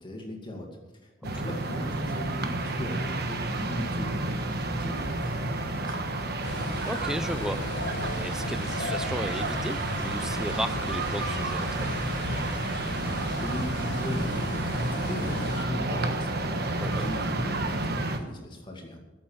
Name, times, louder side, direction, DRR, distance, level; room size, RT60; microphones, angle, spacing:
voice 1, 0.0-6.3 12.9-19.0, left 1 dB, 25° left, 1 dB, 2.3 m, -39 dB
sound 1, 1.2-18.2, right 2 dB, 55° right, 1.2 m, -31 dB
sound 2, 6.4-15.7, left 2 dB, 65° left, 1.3 m, -36 dB
voice 2, 6.9-7.6 8.0-11.9 16.8-17.1, equal, 5° right, 10 dB, 0.6 m, -34 dB
13.5 x 7.6 x 7.4 m, 1.2 s
head